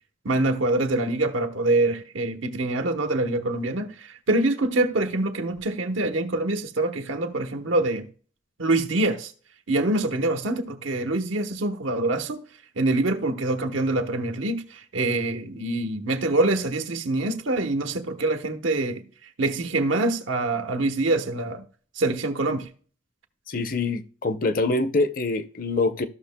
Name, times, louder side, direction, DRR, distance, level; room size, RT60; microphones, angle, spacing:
voice 1, 0.2-8.1 8.6-9.3 9.7-12.4 12.8-19.1 19.4-21.6 22.0-22.7, right 2 dB, 85° right, 1.0 m, -25 dB
voice 2, 23.5-26.1, left 3 dB, 45° left, 0.6 m, -25 dB
14.5 x 6.3 x 2.2 m
head